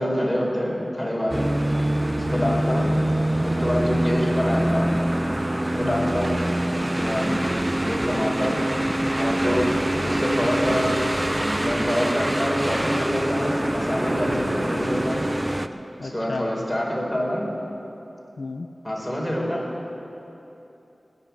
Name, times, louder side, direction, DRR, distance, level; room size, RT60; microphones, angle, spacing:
voice 1, 0.0-1.6 2.3-2.9 3.4-4.9 5.7-6.4 6.8-7.4 7.8-8.6 9.2-11.0 11.4-15.3 16.0-17.5 18.8-19.7, equal, ahead, -3 dB, 4.0 m, -26 dB
sound 1, 1.3-15.7, right 1 dB, 20° right, 0.6 m, -24 dB
voice 2, 5.8-6.1 7.3-7.5 14.2-14.5 16.0-16.5 18.4-18.7, left 3 dB, 75° left, 7 dB, 0.5 m, -33 dB
17.5 x 10.5 x 7.1 m, 3.0 s
wide cardioid pair, 60°, 0 cm